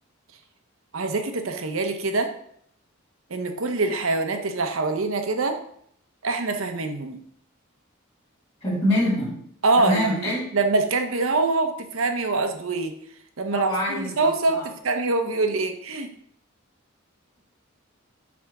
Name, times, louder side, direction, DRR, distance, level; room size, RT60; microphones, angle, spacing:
voice 1, 0.9-2.3 3.3-5.6 6.2-7.2 9.6-12.9 13.4-16.1, right 3 dB, 75° right, 6 dB, 0.9 m, -24 dB
voice 2, 8.6-9.4 9.8-10.5 13.5-14.7, left 1 dB, 30° left, -4 dB, 2.6 m, -25 dB
6.1 x 3.5 x 6.0 m, 0.67 s
head